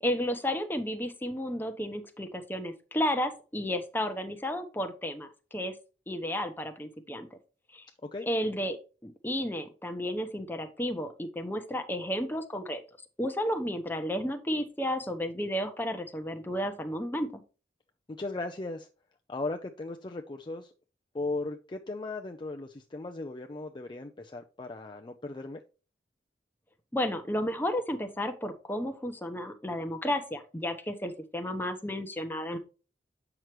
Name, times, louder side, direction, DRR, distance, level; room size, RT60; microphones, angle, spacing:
voice 1, 0.0-5.7 6.1-7.3 7.7-7.8 8.3-8.8 9.0-12.8 13.2-17.4 26.9-32.6, equal, 10° left, 6 dB, 0.9 m, -32 dB
voice 2, 18.1-18.9 19.3-20.7 21.1-25.6, left 2 dB, 25° left, 4 dB, 0.5 m, -37 dB
8.0 x 6.0 x 3.1 m, 0.34 s
head